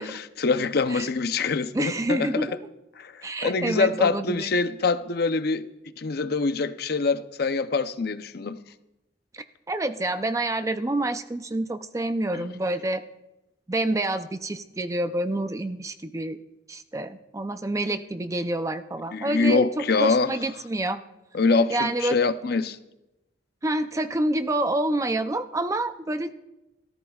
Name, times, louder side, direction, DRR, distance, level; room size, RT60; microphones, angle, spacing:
voice 1, 0.0-2.5 3.0-5.7 6.0-8.6 12.3-12.5 19.1-20.3 21.3-22.8, left 4 dB, 55° left, 0.6 m, -25 dB
voice 2, 1.7-2.6 3.2-4.5 9.3-13.0 13.7-16.4 16.7-21.0 21.7-22.2 23.6-26.3, right 1 dB, 15° right, 0.5 m, -28 dB
26.5 x 14.0 x 2.4 m
head